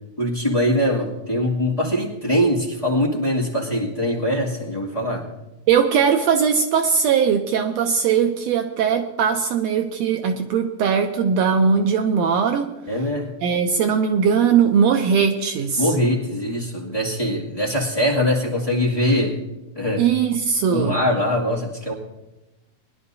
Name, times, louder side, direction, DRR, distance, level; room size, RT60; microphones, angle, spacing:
voice 1, 0.2-5.3 12.9-13.3 15.8-19.4 19.7-20.0 20.7-21.9, left 1 dB, 15° left, -4 dB, 1.8 m, -22 dB
voice 2, 5.7-12.7 13.4-15.9 20.0-21.0, right 6 dB, 75° right, 5 dB, 1.7 m, -19 dB
21.5 x 11.5 x 2.7 m, 1.0 s
omnidirectional pair, 3.3 m